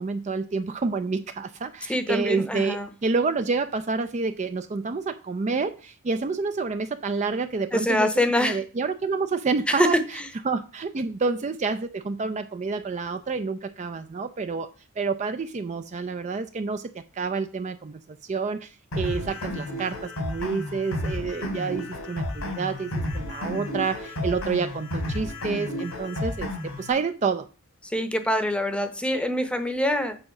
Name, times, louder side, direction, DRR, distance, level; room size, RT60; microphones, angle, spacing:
voice 1, 0.0-14.7 15.0-27.5, right 4 dB, 35° right, 0.4 m, -29 dB
voice 2, 1.9-2.9 7.7-8.6 9.7-10.0 27.9-30.2, left 1 dB, 5° left, 0.8 m, -24 dB
sound 1, 18.9-26.9, left 1 dB, 90° left, 2.5 m, -32 dB
7.7 x 3.9 x 5.8 m
head